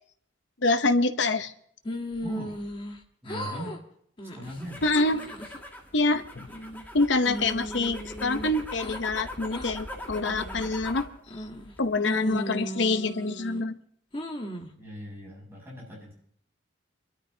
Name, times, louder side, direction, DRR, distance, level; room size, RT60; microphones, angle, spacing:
voice 1, 0.6-1.5 4.8-5.2 5.9-6.5 6.9-11.1 11.8-13.7, left 2 dB, 65° left, 10 dB, 0.8 m, -26 dB
sound 1, 1.9-3.0 3.3-3.8 4.2-4.5 5.0-5.6 6.1-6.9 7.3-9.0 9.5-9.7 10.2-10.7 11.3-11.7 12.0-13.6 14.1-14.7, equal, 25° left, 1.3 m, -36 dB
voice 2, 2.2-2.5 3.2-3.8 4.3-4.8 14.8-16.1, equal, 10° right, -4 dB, 7.6 m, -39 dB
sound 2, 4.4-11.2 11.5-12.1, left 1 dB, 10° left, 2.0 m, -41 dB
30.0 x 13.0 x 2.8 m, 0.64 s
head